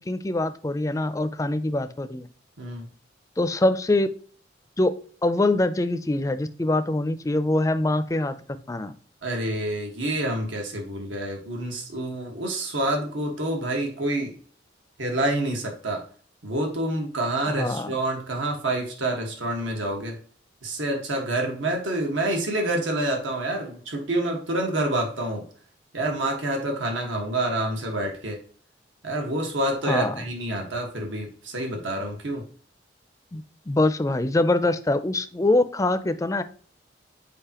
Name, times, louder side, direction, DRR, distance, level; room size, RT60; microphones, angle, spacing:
voice 1, 0.1-2.3 3.4-4.1 4.8-4.9 5.2-8.4 8.7-8.9 17.5-18.0 29.8-30.2 33.3-36.4, left 2 dB, 15° left, 11 dB, 0.4 m, -24 dB
voice 2, 2.6-2.9 9.2-14.4 15.0-16.0 16.4-20.2 20.6-25.4 25.9-28.4 29.0-32.5, right 1 dB, 90° right, 2 dB, 1.5 m, -27 dB
6.8 x 4.9 x 2.9 m, 0.44 s
head